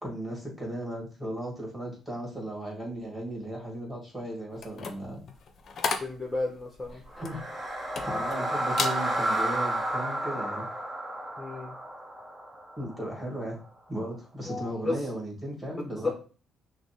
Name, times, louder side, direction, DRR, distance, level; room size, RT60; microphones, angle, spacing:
voice 1, 0.0-5.2 7.2-7.4 8.0-10.7 12.8-13.6 13.9-16.1, right 1 dB, 10° right, -2 dB, 2.0 m, -36 dB
sound 1, 4.5-8.4 8.7-9.0 9.5-9.8, left 5 dB, 55° left, 0.5 m, -34 dB
voice 2, 6.0-7.0 11.4-11.7 14.4-15.0 16.0-16.1, left 2 dB, 15° left, -1 dB, 0.8 m, -32 dB
sound 2, 7.1-13.2, right 1 dB, 35° right, 0.9 m, -31 dB
6.0 x 2.0 x 2.9 m, 0.37 s
cardioid pair, 90°, 0 cm